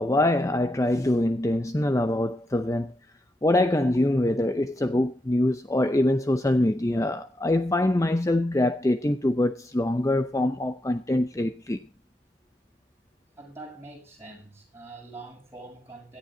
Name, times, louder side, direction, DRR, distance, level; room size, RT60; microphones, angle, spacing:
voice 1, 0.0-2.9 3.4-11.8, left 1 dB, 15° left, 0.6 m, -24 dB
voice 2, 13.4-16.2, right 2 dB, 15° right, 7.5 m, -44 dB
17.0 x 13.5 x 3.8 m
head